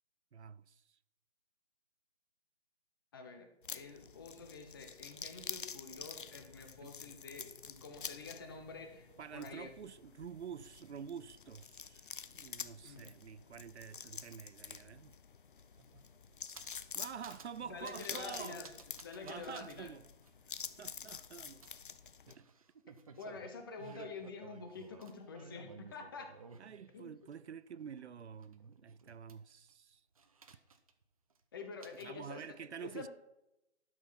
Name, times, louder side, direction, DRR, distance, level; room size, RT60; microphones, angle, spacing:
voice 1, 0.3-0.8 6.8-6.9 9.2-15.2 16.9-18.6 19.2-20.0 20.8-21.7 22.3-22.5 26.6-30.0 32.0-33.1, right 7 dB, 75° right, 0.6 m, -48 dB
voice 2, 3.1-9.7 12.8-13.1 17.6-18.7 19.0-19.9 23.2-26.3 26.9-27.2 31.5-33.1, left 4 dB, 20° left, 1.0 m, -48 dB
sound 1, 3.6-22.3, left 6 dB, 50° left, 0.6 m, -48 dB
sound 2, 15.2-15.3 15.5-16.9 17.2-17.6 17.8-18.2 18.6-19.8 20.2-20.3 21.6-27.3 27.7-29.7 30.2-31.0 31.3-31.4 31.8-32.2, right 5 dB, 30° right, 0.8 m, -56 dB
12.0 x 6.4 x 5.8 m
hypercardioid pair, 165°, 34 cm